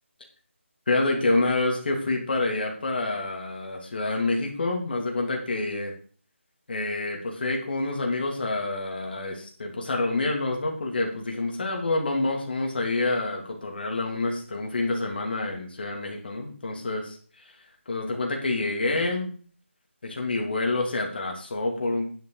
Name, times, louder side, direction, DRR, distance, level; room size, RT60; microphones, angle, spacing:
voice 1, 0.9-5.9 6.7-17.6 17.9-19.3 20.0-22.1, left 2 dB, 45° left, 1 dB, 2.9 m, -27 dB
10.5 x 7.4 x 4.8 m, 0.43 s
figure-of-eight pair, 165°, 7 cm